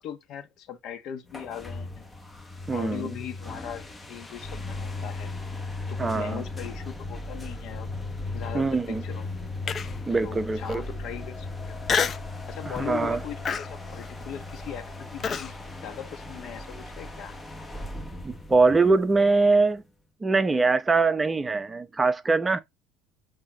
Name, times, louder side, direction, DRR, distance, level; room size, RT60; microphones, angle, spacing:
voice 1, 0.0-2.1 2.7-5.3 5.9-7.9 8.3-9.4 10.2-11.8 12.5-17.4, left 9 dB, 55° left, 1.2 m, -39 dB
sound 1, 1.3-19.8, left 2 dB, 15° left, 1.1 m, -37 dB
voice 2, 2.7-3.1 6.0-6.4 8.5-9.0 10.1-10.8 12.7-13.2 18.2-19.8 20.2-22.6, right 3 dB, 20° right, 0.8 m, -23 dB
Human voice, 9.7-10.1 10.7-10.8 11.9-12.3 12.8-13.0 13.5-15.5, left 6 dB, 35° left, 0.6 m, -28 dB
8.6 x 2.9 x 3.8 m
supercardioid pair, 105°, 0 cm